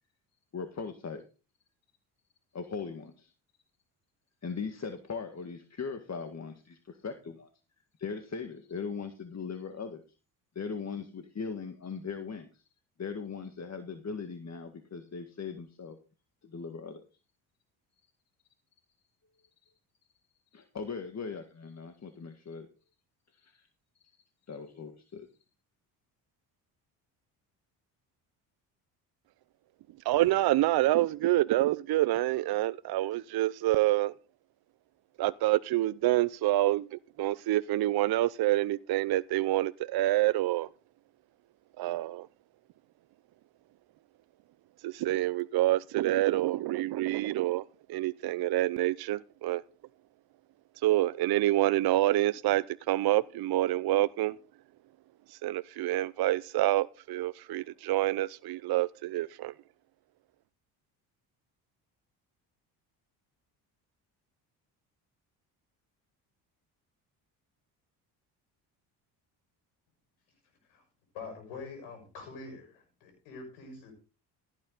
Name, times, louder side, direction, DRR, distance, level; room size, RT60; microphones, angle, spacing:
voice 1, 0.5-1.2 2.5-3.3 4.4-7.5 8.0-10.0 10.6-12.6 13.0-16.0 16.4-17.0 20.5-22.7 23.4-23.7 24.5-25.3, left 5 dB, 35° left, 1.9 m, -39 dB
voice 2, 30.1-34.1 35.2-40.7 41.8-42.3 44.8-49.6 50.8-54.4 55.3-59.5, right 16 dB, 50° right, 0.6 m, -27 dB
voice 3, 71.1-73.9, left 4 dB, 80° left, 6.2 m, -45 dB
15.5 x 9.0 x 4.0 m
hypercardioid pair, 65°, 47 cm